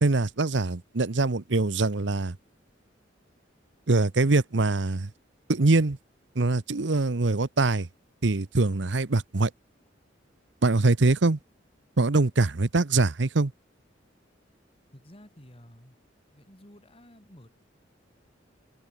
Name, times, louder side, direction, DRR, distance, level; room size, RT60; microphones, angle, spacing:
voice 1, 0.0-2.4 3.9-5.1 5.5-6.0 6.4-7.9 8.2-9.5 10.6-11.4 12.0-13.5, right 3 dB, 70° right, 0.9 m, -23 dB
voice 2, 14.9-16.0 16.3-17.5, equal, 30° left, 5.6 m, -52 dB
head